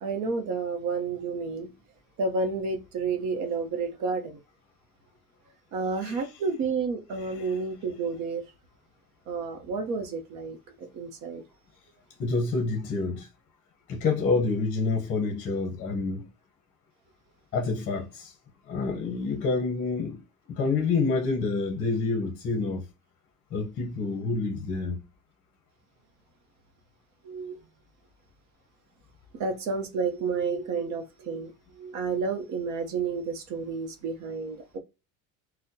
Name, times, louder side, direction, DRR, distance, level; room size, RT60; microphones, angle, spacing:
voice 1, 0.0-1.7 2.2-4.4 5.7-8.4 9.3-11.4 27.2-27.6 29.3-34.8, right 4 dB, 50° right, 0.8 m, -31 dB
voice 2, 12.2-13.3 13.9-16.2 17.5-18.3 18.7-20.2 20.5-22.9 23.5-25.0, left 4 dB, 30° left, 0.8 m, -28 dB
4.1 x 2.1 x 2.6 m
cardioid pair, 180°, 37 cm